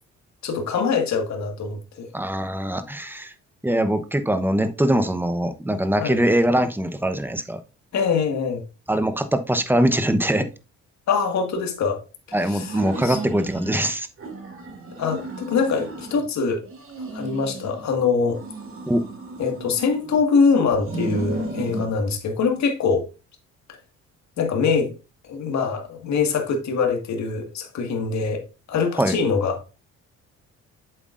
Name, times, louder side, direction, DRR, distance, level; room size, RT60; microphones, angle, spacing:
voice 1, 0.4-2.1 6.0-6.2 7.9-8.6 11.1-12.0 12.4-13.2 15.0-16.6 17.1-18.4 19.4-23.1 24.4-24.9 25.3-28.4 28.7-29.6, left 5 dB, 65° left, 1.9 m, -23 dB
voice 2, 2.1-3.3 3.6-7.6 8.9-10.5 12.3-14.1 18.9-19.1 29.0-29.1, right 1 dB, 5° right, 0.9 m, -22 dB
sound 1, 12.5-13.8 14.2-16.3 16.6-17.9 18.3-20.2 20.7-21.9, right 2 dB, 45° right, 2.6 m, -34 dB
8.0 x 7.6 x 2.5 m
cardioid pair, 90°, 30 cm